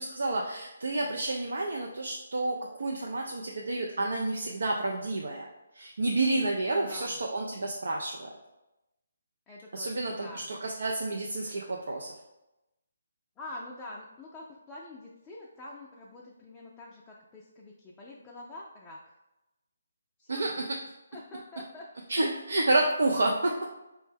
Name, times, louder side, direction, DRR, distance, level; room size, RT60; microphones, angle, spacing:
voice 1, 0.0-5.4 5.7-8.3 9.7-12.1 20.3-20.8 22.1-23.5, right 2 dB, 75° right, 0 dB, 0.4 m, -30 dB
voice 2, 6.7-7.2 9.5-10.5 13.4-19.1 20.2-20.4 21.1-21.9, left 2 dB, 10° left, -4 dB, 0.4 m, -46 dB
4.4 x 2.1 x 3.3 m, 0.96 s
hypercardioid pair, 155°, 0 cm